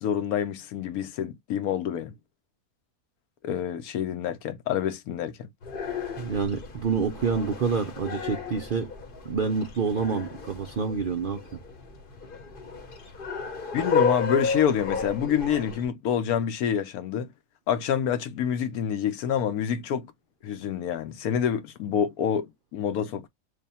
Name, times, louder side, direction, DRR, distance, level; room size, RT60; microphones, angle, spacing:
voice 1, 0.0-2.1 3.4-5.5 13.7-17.3 17.7-20.1 20.4-23.3, left 8 dB, 85° left, 1.1 m, -27 dB
sound 1, 5.6-15.8, left 5 dB, 45° left, 0.8 m, -32 dB
voice 2, 6.2-8.9 9.2-11.6, right 5 dB, 70° right, 0.5 m, -28 dB
3.3 x 2.2 x 4.1 m
omnidirectional pair, 1.5 m